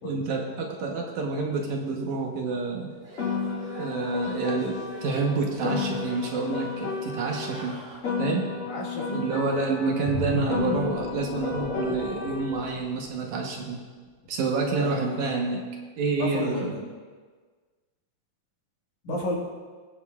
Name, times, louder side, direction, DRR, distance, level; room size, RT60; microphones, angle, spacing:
voice 1, 0.0-3.0 3.8-7.8 8.2-8.5 9.1-13.8 14.3-15.6 16.0-16.7 19.1-19.2, right 4 dB, 70° right, 1 dB, 2.2 m, -28 dB
sound 1, 2.9-8.0, equal, 30° right, 2.5 m, -44 dB
Piano, 3.2-7.6 8.0-12.6, left 5 dB, 45° left, 2.5 m, -32 dB
voice 2, 8.7-9.3 14.8-15.5 16.2-16.8 19.0-19.4, left 2 dB, 65° left, -3 dB, 3.0 m, -32 dB
sound 2, 10.0-13.6 14.1-14.3, equal, 90° left, 4.8 m, -35 dB
20.0 x 9.1 x 2.3 m, 1.5 s
omnidirectional pair, 3.7 m